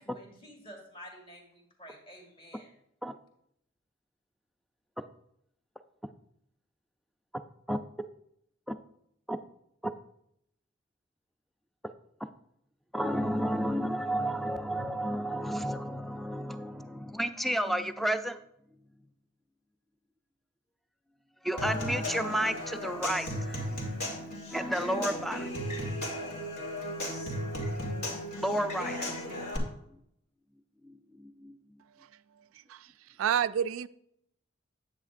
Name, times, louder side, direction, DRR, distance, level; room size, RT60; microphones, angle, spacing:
voice 1, 0.0-2.7, equal, 25° left, 1 dB, 2.2 m, -50 dB
voice 2, 12.9-18.4 21.4-25.5 28.3-29.1 29.9-30.0 30.8-31.6, equal, ahead, 9 dB, 0.4 m, -32 dB
Human voice / Acoustic guitar / Percussion, 21.6-29.6, left 1 dB, 50° left, 2.3 m, -35 dB
voice 3, 32.4-32.9 33.2-33.9, right 9 dB, 80° right, 16 dB, 0.3 m, -30 dB
9.7 x 8.6 x 2.5 m, 0.74 s
head